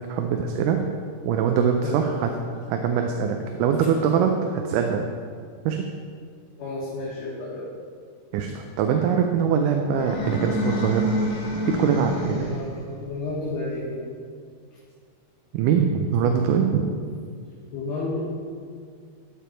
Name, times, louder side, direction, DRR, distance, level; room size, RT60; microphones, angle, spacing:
voice 1, 0.1-0.8 1.3-2.3 2.7-5.1 5.7-5.9 8.3-11.2 11.7-12.6 15.5-16.9, right 7 dB, 85° right, 4 dB, 2.2 m, -23 dB
voice 2, 6.6-7.7 12.3-14.0 16.7-16.8 17.7-18.2, left 2 dB, 80° left, -8 dB, 3.2 m, -32 dB
sound 1, 9.9-12.8, equal, 50° left, 2.7 m, -28 dB
13.5 x 5.1 x 4.4 m, 2.1 s
omnidirectional pair, 3.7 m